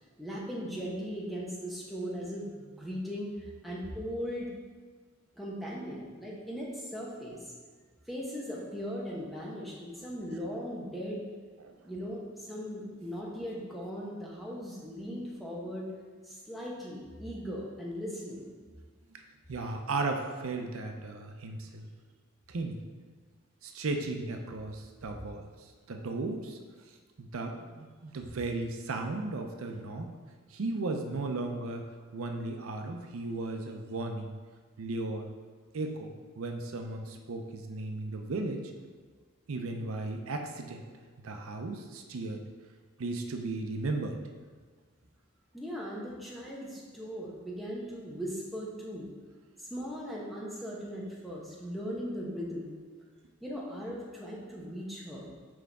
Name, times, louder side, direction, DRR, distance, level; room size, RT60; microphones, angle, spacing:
voice 1, 0.2-4.5 5.3-7.5 8.1-11.2 11.8-15.9 16.2-18.5 45.5-49.1 49.6-52.7 53.4-55.3, equal, ahead, -5 dB, 0.9 m, -38 dB
voice 2, 19.5-21.9 22.5-22.8 23.6-25.4 25.9-26.6 27.2-30.1 30.5-31.8 32.1-34.3 34.8-35.3 35.7-38.7 39.5-40.9 41.2-42.4 43.0-44.2, right 2 dB, 85° right, 4 dB, 0.6 m, -35 dB
6.2 x 4.7 x 3.5 m, 1.5 s
head